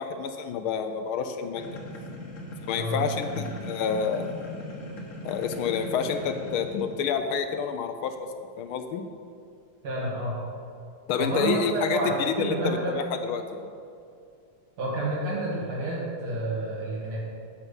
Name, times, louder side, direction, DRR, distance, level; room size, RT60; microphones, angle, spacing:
voice 1, 0.0-1.8 2.6-4.4 5.2-8.3 8.6-9.0 11.1-13.7, left 6 dB, 80° left, 7 dB, 1.4 m, -29 dB
sound 1, 1.5-7.2, left 1 dB, 45° left, 1.2 m, -39 dB
voice 2, 9.8-10.4 11.1-12.9 14.8-17.2, right 2 dB, 80° right, -5 dB, 3.1 m, -29 dB
9.4 x 6.8 x 5.4 m, 2.5 s
omnidirectional pair, 2.4 m